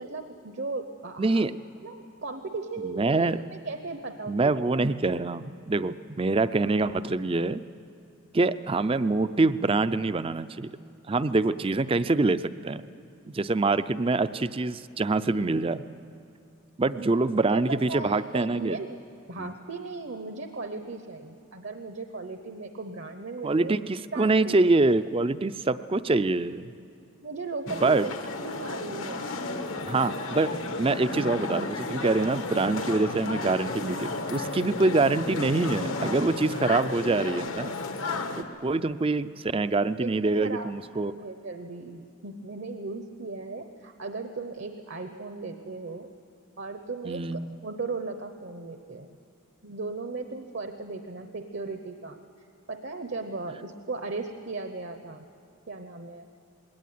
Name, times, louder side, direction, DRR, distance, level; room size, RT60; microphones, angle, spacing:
voice 1, 0.0-1.5 1.8-4.5 17.0-17.2 17.5-19.0 19.3-23.8 24.1-24.6 27.2-28.1 28.4-29.3 40.0-40.7 41.0-46.1 46.6-49.1 49.6-52.2 52.7-55.2 55.7-56.2, right 3 dB, 55° right, 6 dB, 0.9 m, -37 dB
voice 2, 1.2-1.5 2.8-3.5 4.3-7.6 8.3-10.7 11.1-12.8 13.3-15.8 16.8-18.8 19.4-19.5 23.4-26.7 27.7-28.1 29.9-37.7 38.4-41.1 47.0-47.6, right 3 dB, 25° right, 13 dB, 0.4 m, -25 dB
sound 1, 27.7-38.4, left 3 dB, 75° left, 1.4 m, -33 dB
21.0 x 18.0 x 9.4 m, 2.6 s
head